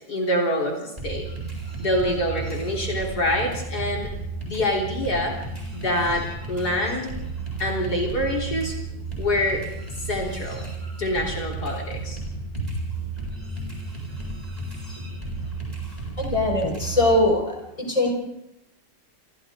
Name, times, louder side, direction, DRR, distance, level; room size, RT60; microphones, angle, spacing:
voice 1, 0.1-1.3 1.8-4.1 4.4-5.3 5.7-7.1 7.6-8.7 9.2-9.6 10.0-10.6 11.0-12.2 12.6-12.7, left 1 dB, 60° left, -1 dB, 4.2 m, -26 dB
sound 1, 1.0-17.3, right 3 dB, 20° right, 7.7 m, -33 dB
voice 2, 16.2-17.6 17.9-18.1, left 2 dB, 15° left, 0 dB, 5.1 m, -21 dB
27.5 x 26.0 x 3.8 m, 0.87 s
omnidirectional pair, 1.9 m